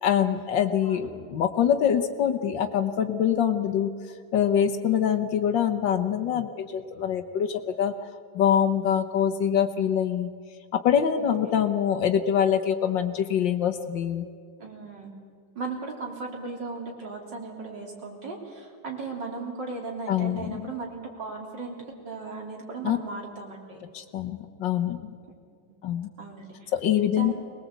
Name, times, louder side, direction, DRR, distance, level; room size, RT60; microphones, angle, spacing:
voice 1, 0.0-3.9 4.3-7.9 8.3-10.3 10.7-14.2 20.1-20.7 22.8-23.0 23.9-25.0 25.8-26.1 26.7-27.3, left 9 dB, 75° left, 7 dB, 1.7 m, -24 dB
voice 2, 11.3-11.7 14.6-15.1 15.6-21.8 22.0-23.8 25.3-25.4 26.2-26.7 27.2-27.3, right 4 dB, 70° right, 0 dB, 4.2 m, -37 dB
23.0 x 20.0 x 8.2 m, 2.2 s
omnidirectional pair, 2.0 m